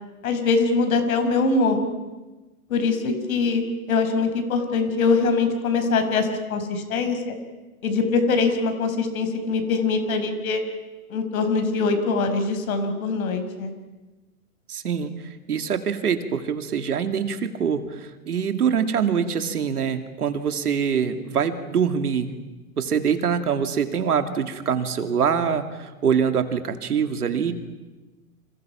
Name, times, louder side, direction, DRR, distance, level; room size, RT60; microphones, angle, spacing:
voice 1, 0.2-1.8 2.7-3.6 3.9-7.4 7.8-10.6 11.1-13.7, left 4 dB, 70° left, 7 dB, 5.6 m, -23 dB
voice 2, 14.7-15.1 15.5-22.4 22.8-27.5, right 7 dB, 85° right, 7 dB, 2.7 m, -24 dB
29.5 x 27.0 x 5.9 m, 1.2 s
hypercardioid pair, 125°, 44 cm